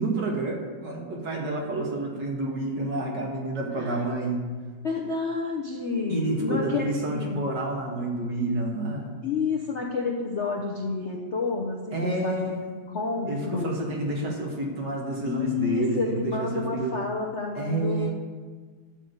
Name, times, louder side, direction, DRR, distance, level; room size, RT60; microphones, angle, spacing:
voice 1, 0.0-4.5 6.1-9.2 11.9-12.9 13.3-17.0 17.6-18.1, right 2 dB, 55° right, -1 dB, 2.2 m, -29 dB
voice 2, 4.8-7.4 9.2-12.5 12.9-13.7 15.2-18.1, left 4 dB, 50° left, -1 dB, 0.9 m, -29 dB
11.5 x 5.1 x 7.9 m, 1.5 s
omnidirectional pair, 2.2 m